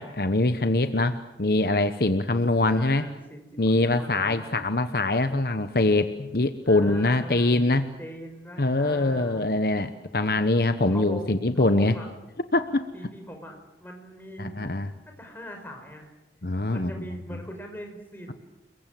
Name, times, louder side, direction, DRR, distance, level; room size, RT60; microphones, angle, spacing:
voice 1, 0.0-3.1 3.6-7.9 8.6-11.9 12.5-12.9 14.4-14.9 16.4-17.1, left 2 dB, 55° left, 10 dB, 1.1 m, -23 dB
voice 2, 2.7-4.6 6.7-7.6 8.0-9.5 10.9-12.1 12.9-14.6 15.1-16.1 16.7-18.3, equal, 10° left, 3 dB, 5.6 m, -41 dB
30.0 x 22.5 x 7.8 m, 0.96 s
head